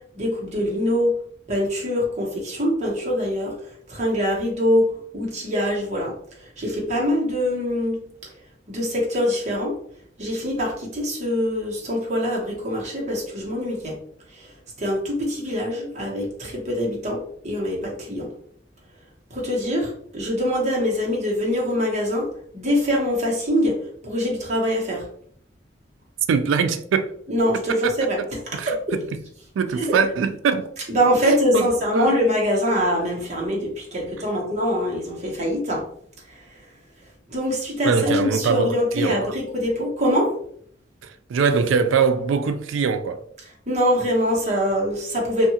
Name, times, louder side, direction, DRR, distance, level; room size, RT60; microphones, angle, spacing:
voice 1, 0.1-1.1 1.5-3.5 3.9-6.1 6.6-8.0 8.7-9.7 10.2-14.0 14.3-14.5 14.8-18.3 19.3-22.3 22.5-23.8 24.0-25.1 27.3-28.2 28.7-28.8 29.8-30.0 30.9-35.8 36.3-36.6 37.3-40.3 43.7-45.5, equal, 35° right, 0.9 m, -23 dB
voice 2, 26.3-27.1 27.7-28.3 28.5-29.0 29.6-30.7 31.2-32.2 37.8-39.3 41.0-43.2, right 5 dB, 90° right, 0.3 m, -23 dB
2.7 x 2.3 x 2.7 m
head